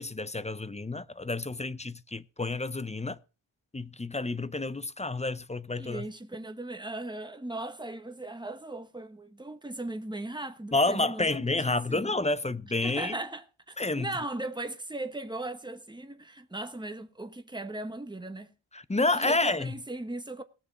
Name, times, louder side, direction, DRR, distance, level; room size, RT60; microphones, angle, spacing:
voice 1, 0.0-3.2 3.7-6.0 10.7-13.1 13.8-14.1 18.7-19.7, left 2 dB, 15° left, 0.5 m, -29 dB
voice 2, 5.8-12.1 12.8-18.5 19.1-20.4, right 2 dB, 10° right, 1.2 m, -38 dB
18.5 x 6.8 x 4.5 m
wide cardioid pair, 115°, 48 cm